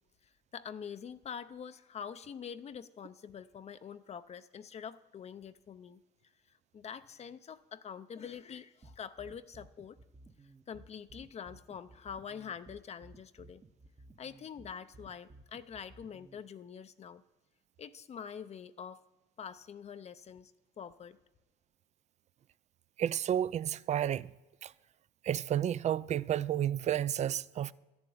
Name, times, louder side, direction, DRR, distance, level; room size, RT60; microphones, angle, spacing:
voice 1, 0.5-6.0 6.7-10.0 10.7-13.6 14.2-17.2 17.8-19.0 19.4-20.5 20.8-21.2, left 7 dB, 40° left, 0.6 m, -45 dB
sound 1, 8.8-16.4, right 2 dB, 25° right, 0.9 m, -56 dB
voice 2, 23.0-24.3 24.6-24.7 25.2-27.7, right 10 dB, 45° right, 0.4 m, -31 dB
13.0 x 7.1 x 9.3 m
cardioid pair, 110°, 17 cm